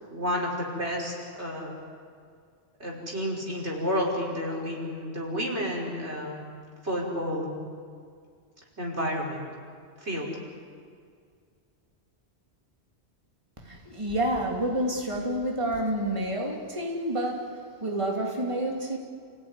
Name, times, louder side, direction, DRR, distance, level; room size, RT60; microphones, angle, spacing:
voice 1, 0.1-1.7 2.8-6.4 6.8-7.5 8.8-9.5 10.0-10.3, equal, 90° right, -2 dB, 5.8 m, -30 dB
voice 2, 13.6-19.0, right 1 dB, 30° right, 0 dB, 3.0 m, -29 dB
29.5 x 17.0 x 9.8 m, 2.1 s
omnidirectional pair, 1.1 m